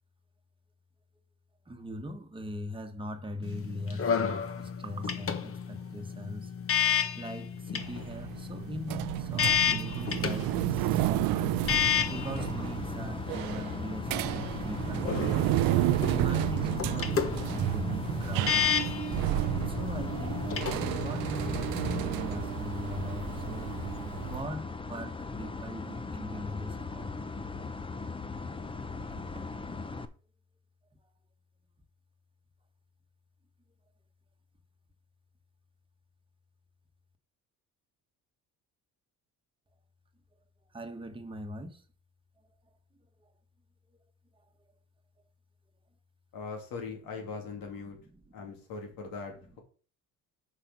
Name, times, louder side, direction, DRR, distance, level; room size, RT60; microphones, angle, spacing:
voice 1, 1.7-6.5 7.2-11.6 12.1-15.4 16.0-18.7 19.7-23.7 24.3-27.5 29.3-29.5 40.7-41.8 47.8-48.6, equal, 15° right, 1.2 m, -41 dB
sound 1, 3.4-22.0, left 8 dB, 40° left, 1.0 m, -32 dB
sound 2, 7.8-24.4, right 16 dB, 90° right, 0.5 m, -32 dB
sound 3, 11.6-30.1, left 4 dB, 15° left, 0.5 m, -39 dB
voice 2, 46.3-48.0 48.3-49.6, left 4 dB, 80° left, 2.6 m, -40 dB
5.7 x 4.9 x 6.0 m
cardioid pair, 105°, 34 cm